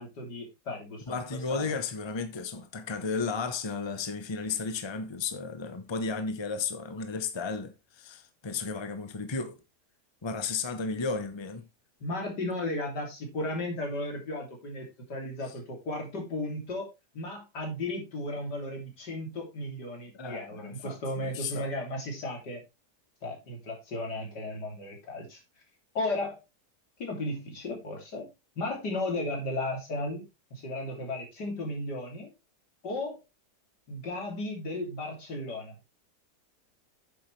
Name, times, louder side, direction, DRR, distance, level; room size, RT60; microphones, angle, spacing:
voice 1, 0.0-1.0 1.5-1.7 12.0-22.6 23.2-25.4 25.9-26.4 27.0-28.3 28.6-32.3 32.8-33.2 33.9-35.7, left 1 dB, 80° left, 3.8 m, -35 dB
voice 2, 1.1-9.6 10.2-11.6 20.1-21.7, left 4 dB, 20° left, 0.9 m, -34 dB
9.3 x 7.4 x 3.3 m
omnidirectional pair, 1.8 m